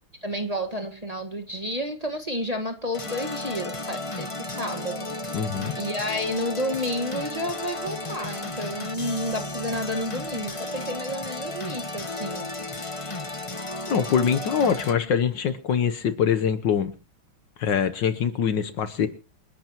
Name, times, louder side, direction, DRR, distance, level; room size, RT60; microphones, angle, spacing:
voice 1, 0.2-5.4 5.8-12.5, equal, 20° right, 4 dB, 1.5 m, -31 dB
sound 1, 2.9-14.9, left 2 dB, 40° left, 0.4 m, -34 dB
voice 2, 5.3-5.7 13.9-16.9 17.6-19.1, left 7 dB, 65° left, 11 dB, 1.5 m, -24 dB
28.5 x 11.5 x 3.0 m, 0.34 s
omnidirectional pair, 2.3 m